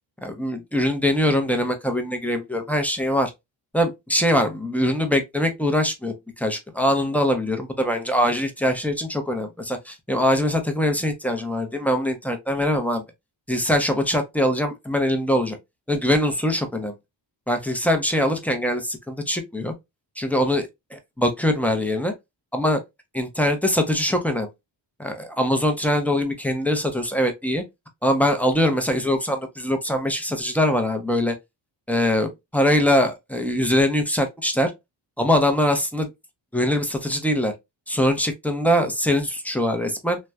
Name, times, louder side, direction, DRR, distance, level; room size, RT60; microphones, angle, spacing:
voice 1, 0.2-3.3 3.7-13.0 13.5-15.6 15.9-16.9 17.5-19.7 20.2-22.1 22.5-22.8 23.1-24.5 25.0-27.6 28.0-31.4 31.9-34.7 35.2-36.1 36.5-37.5 37.9-40.2, left 1 dB, 5° left, 0.6 m, -22 dB
3.1 x 2.2 x 2.3 m
cardioid pair, 65°, 46 cm